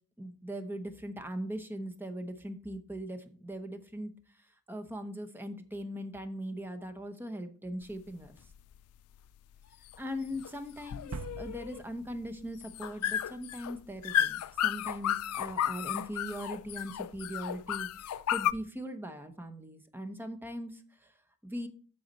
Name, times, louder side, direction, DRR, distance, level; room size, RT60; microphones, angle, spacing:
voice 1, 0.2-4.1 4.7-8.3 10.0-21.1 21.4-21.7, equal, 10° right, 7 dB, 0.8 m, -40 dB
sound 1, 7.8-18.5, left 10 dB, 85° left, 0.4 m, -34 dB
sound 2, 11.1-13.2, right 5 dB, 90° right, 0.5 m, -45 dB
8.1 x 7.2 x 4.1 m, 0.41 s
head